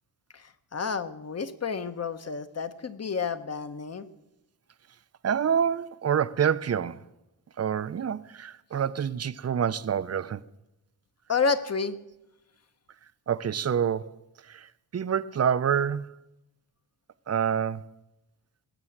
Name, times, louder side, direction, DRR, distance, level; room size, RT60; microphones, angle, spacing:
voice 1, 0.3-4.1 11.3-12.0, left 5 dB, 40° left, 1.0 m, -30 dB
voice 2, 5.2-7.0 7.6-10.4 13.3-16.1 17.3-17.9, right 8 dB, 40° right, 0.5 m, -27 dB
19.0 x 7.5 x 7.2 m
wide cardioid pair, 125°, 41 cm